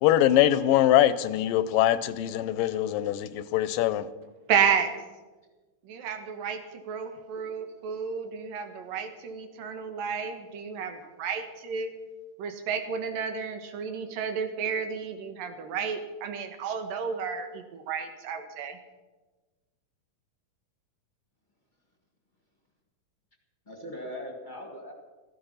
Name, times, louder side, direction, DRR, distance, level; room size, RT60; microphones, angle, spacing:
voice 1, 0.0-4.1, left 12 dB, 85° left, 2.4 m, -23 dB
voice 2, 4.5-4.9 5.9-11.9 12.4-18.8, right 6 dB, 85° right, 3.1 m, -31 dB
voice 3, 23.6-24.9, left 1 dB, 20° left, 1.3 m, -40 dB
15.5 x 14.0 x 5.6 m
omnidirectional pair, 3.8 m